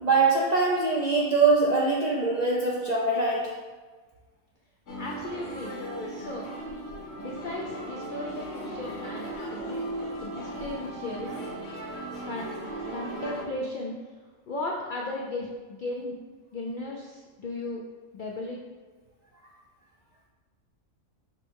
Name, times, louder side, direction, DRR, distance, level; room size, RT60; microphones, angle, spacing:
voice 1, 0.0-3.5, right 3 dB, 60° right, -4 dB, 0.4 m, -23 dB
sound 1, 4.9-13.5, right 1 dB, 60° left, 1.0 m, -37 dB
voice 2, 5.0-5.8 6.1-6.5 7.2-9.8 10.2-11.3 12.2-12.5 12.9-14.0 14.5-16.2 16.5-17.8 18.1-18.6, left 2 dB, 80° left, -1 dB, 0.4 m, -36 dB
5.6 x 2.1 x 4.5 m, 1.4 s
omnidirectional pair, 1.4 m